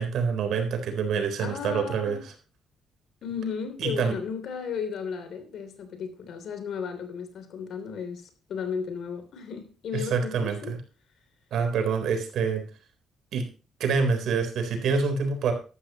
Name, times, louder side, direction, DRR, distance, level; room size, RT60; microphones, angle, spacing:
voice 1, 0.0-2.3 3.8-4.2 9.9-10.8 11.5-12.6 13.3-13.4 13.8-15.5, right 5 dB, 70° right, 3.8 m, -26 dB
voice 2, 1.4-2.2 3.2-10.7, left 6 dB, 65° left, 3.2 m, -34 dB
12.5 x 12.5 x 3.0 m
cardioid pair, 75°, 0 cm